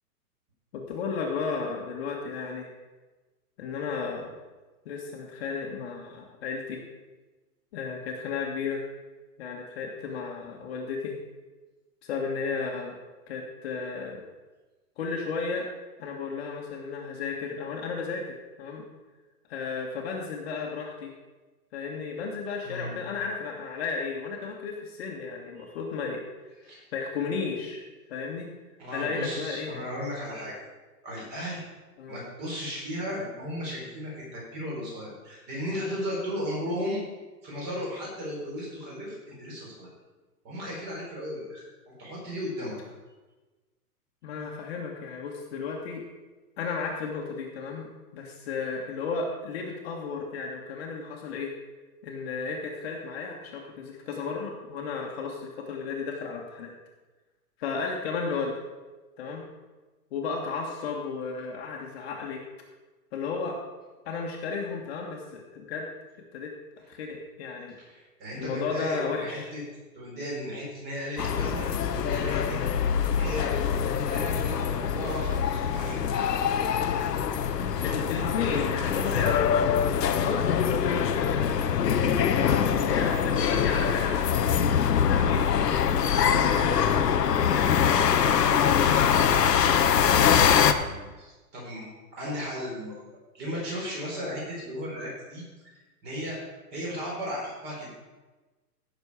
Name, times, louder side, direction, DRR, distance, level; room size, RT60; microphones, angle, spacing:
voice 1, 0.7-2.7 3.6-4.3 4.8-6.8 7.7-8.8 9.4-11.2 12.0-12.9 13.3-14.2 15.0-15.7 16.0-18.8 19.5-21.1 21.7-26.3 26.9-27.8 28.1-28.5 28.9-29.7 32.0-32.2 44.2-46.0 46.6-51.5 52.0-56.7 57.6-58.5 59.2-59.4 60.1-62.4 63.1-63.6 64.0-65.9 66.3-66.5 66.9-67.8 68.4-69.5 77.8-79.4 79.8-81.7 82.3-85.6 86.2-89.6 89.9-90.3, left 5 dB, 40° left, 0 dB, 1.7 m, -34 dB
voice 2, 28.8-30.6 31.0-31.6 32.1-37.0 37.4-39.9 40.4-42.8 67.8-69.6 69.9-72.6 73.1-73.5 74.0-76.0 90.7-93.0 93.3-95.4 96.0-96.4 96.7-97.9, equal, 20° right, -4 dB, 4.0 m, -35 dB
sound 1, 71.2-90.7, left 8 dB, 90° left, 1.1 m, -24 dB
16.0 x 6.8 x 4.9 m, 1.2 s
hypercardioid pair, 160°, 47 cm